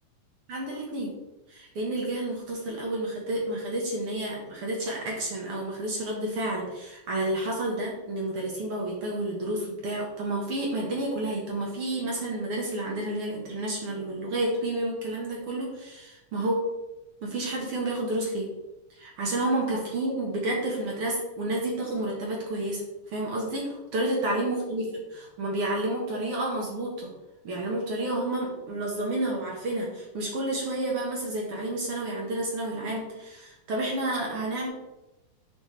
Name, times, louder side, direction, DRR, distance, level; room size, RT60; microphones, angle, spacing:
voice 1, 0.5-1.1 1.5-16.6 17.2-18.5 19.0-27.1 27.4-34.7, right 1 dB, 55° right, -2 dB, 1.9 m, -30 dB
7.0 x 6.2 x 3.2 m, 0.99 s
omnidirectional pair, 3.5 m